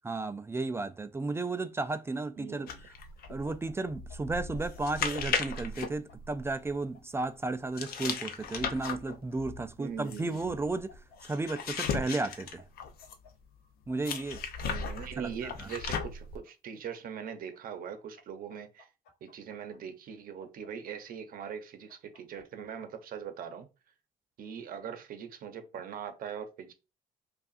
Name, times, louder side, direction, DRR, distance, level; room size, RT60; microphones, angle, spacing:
voice 1, 0.0-2.7 3.3-12.6 13.9-14.4 15.2-15.7, right 3 dB, 15° right, 0.3 m, -34 dB
voice 2, 2.4-2.9 9.8-10.6 14.7-18.9 19.2-23.7 24.4-26.7, right 7 dB, 60° right, 0.8 m, -41 dB
sound 1, 2.7-6.8 7.8-13.3 14.0-16.4, left 5 dB, 65° left, 0.6 m, -37 dB
sound 2, 3.2-4.9 5.1-7.0 7.5-9.7 10.5-11.6 11.9-12.0 12.4-13.3 13.9-15.0 15.5-16.5 17.3-18.2 18.5-19.8 20.4-21.4 21.9-22.9, left 3 dB, 80° left, 1.2 m, -58 dB
5.3 x 2.4 x 2.5 m
cardioid pair, 110°, 17 cm